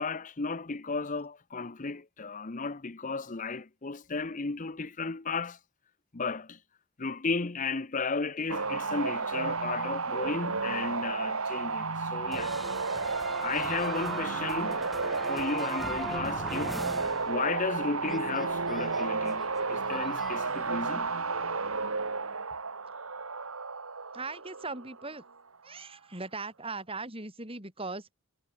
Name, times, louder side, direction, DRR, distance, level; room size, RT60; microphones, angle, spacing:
voice 1, 0.0-5.6 6.1-6.6 7.0-12.5 13.4-14.9 15.3-16.8 17.3-21.1, left 4 dB, 35° left, 0.8 m, -34 dB
sound 1, 8.5-25.2, right 4 dB, 75° right, 2.3 m, -32 dB
sound 2, 12.3-17.8 18.0-20.4, equal, ahead, 1.0 m, -41 dB
voice 2, 24.1-25.2 25.6-28.1, right 3 dB, 25° right, 4.9 m, -39 dB
head